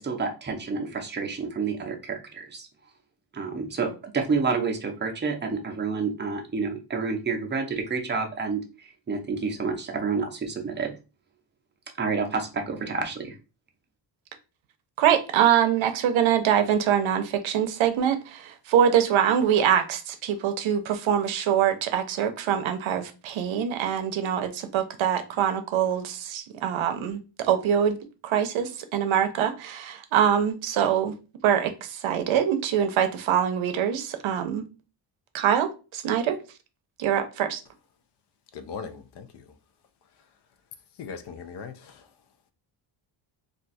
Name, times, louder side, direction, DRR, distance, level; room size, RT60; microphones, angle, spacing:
voice 1, 0.0-2.7 3.3-10.9 12.0-13.3, right 4 dB, 20° right, 3 dB, 0.5 m, -29 dB
voice 2, 15.0-28.0 28.2-31.1 31.4-34.6 35.3-36.4 37.0-37.6, right 9 dB, 70° right, 9 dB, 0.6 m, -24 dB
voice 3, 38.5-39.4 41.0-42.1, left 6 dB, 55° left, 9 dB, 0.5 m, -39 dB
2.5 x 2.3 x 4.0 m, 0.31 s
wide cardioid pair, 145°, 49 cm